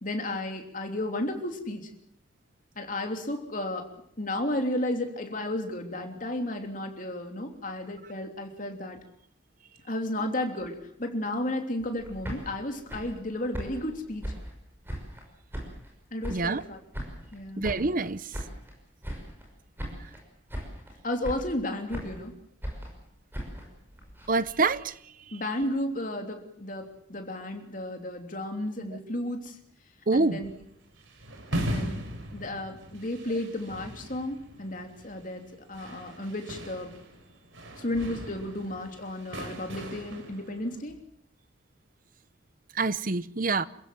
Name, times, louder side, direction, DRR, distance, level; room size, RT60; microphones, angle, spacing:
voice 1, 0.0-1.9 2.7-3.9 4.2-9.0 9.9-14.2 16.1-16.8 17.3-17.7 21.0-22.3 25.3-29.6 30.1-30.5 31.5-32.0 32.3-35.4 35.7-36.9 37.7-40.9, left 1 dB, 45° left, 3.2 m, -33 dB
sound 1, 12.0-15.2 15.5-16.7 16.9-18.7 19.0-19.5 19.8-20.2 20.5-20.9 21.2-22.3 22.6-24.8, equal, 10° right, 5.8 m, -39 dB
voice 2, 16.3-16.6 17.6-18.2 24.3-24.9 30.1-30.4 42.8-43.6, right 3 dB, 45° right, 0.8 m, -26 dB
sound 2, 30.3-40.8, equal, 90° right, 4.0 m, -39 dB
28.0 x 15.5 x 7.6 m
head